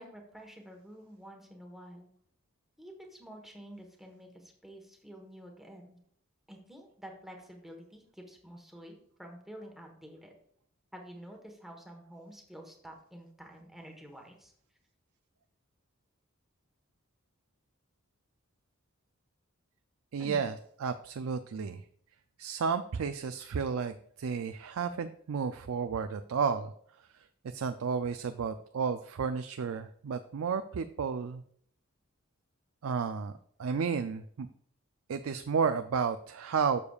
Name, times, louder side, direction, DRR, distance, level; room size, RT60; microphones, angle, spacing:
voice 1, 0.0-2.1 2.8-6.0 6.5-10.3 10.9-14.5 20.2-20.4, equal, ahead, 1 dB, 1.2 m, -49 dB
voice 2, 20.1-20.5 20.8-21.8 22.4-26.7 27.0-31.4 32.8-33.3 33.6-34.5 35.1-36.8, right 6 dB, 75° right, 9 dB, 0.4 m, -32 dB
12.0 x 6.8 x 2.4 m, 0.63 s
head